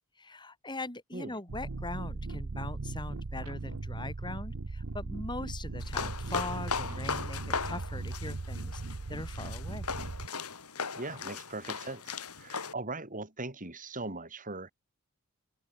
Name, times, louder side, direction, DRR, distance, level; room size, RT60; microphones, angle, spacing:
voice 1, 0.2-8.8 9.1-9.9, left 2 dB, 20° left, 3.6 m, -41 dB
sound 1, 1.5-10.3, right 3 dB, 70° right, 0.9 m, -38 dB
sound 2, 5.8-12.7, left 5 dB, 85° left, 3.9 m, -38 dB
voice 2, 11.0-14.7, right 2 dB, 35° right, 5.2 m, -40 dB
head